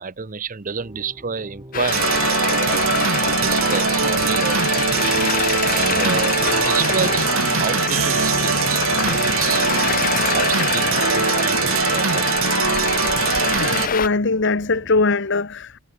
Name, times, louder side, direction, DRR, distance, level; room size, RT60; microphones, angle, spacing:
voice 1, 0.0-4.9 5.3-12.9, right 5 dB, 40° right, 0.8 m, -30 dB
sound 1, 0.8-15.1, equal, 20° right, 5.5 m, -41 dB
Traffic noise roadway noise, 1.7-14.1, left 8 dB, 40° left, 0.6 m, -25 dB
sound 2, 1.9-13.9, right 6 dB, 70° right, 1.4 m, -21 dB
voice 2, 13.6-15.8, left 3 dB, 60° left, 1.3 m, -21 dB
head